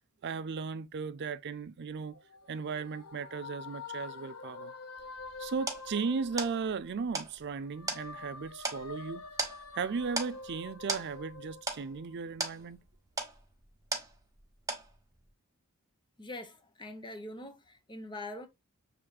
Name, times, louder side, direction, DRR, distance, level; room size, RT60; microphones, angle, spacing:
voice 1, 0.2-2.2 2.5-4.7 5.4-9.2 9.7-12.8, right 5 dB, 50° right, 0.4 m, -36 dB
sound 1, 2.1-7.1 7.5-12.2, left 4 dB, 85° left, 0.7 m, -47 dB
sound 2, 5.0-14.4 14.7-15.3, right 3 dB, 15° right, 1.0 m, -39 dB
voice 2, 16.2-18.5, left 1 dB, 20° left, 0.8 m, -43 dB
6.2 x 3.3 x 2.3 m
head